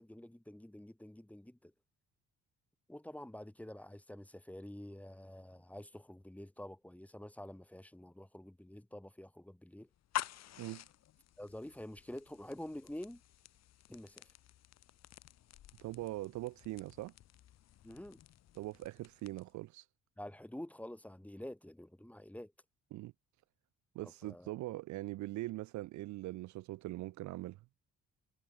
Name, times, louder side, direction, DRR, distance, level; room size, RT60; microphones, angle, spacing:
voice 1, 0.0-1.7 2.9-9.9 11.4-13.2 13.9-14.3 17.8-18.2 20.2-22.5 24.0-24.5, left 1 dB, 5° left, 2.3 m, -48 dB
sound 1, 9.9-19.6, left 12 dB, 60° left, 0.8 m, -48 dB
voice 2, 15.8-17.1 18.6-19.8 22.9-23.1 24.0-27.6, right 17 dB, 70° right, 0.4 m, -42 dB
cardioid pair, 90°, 30 cm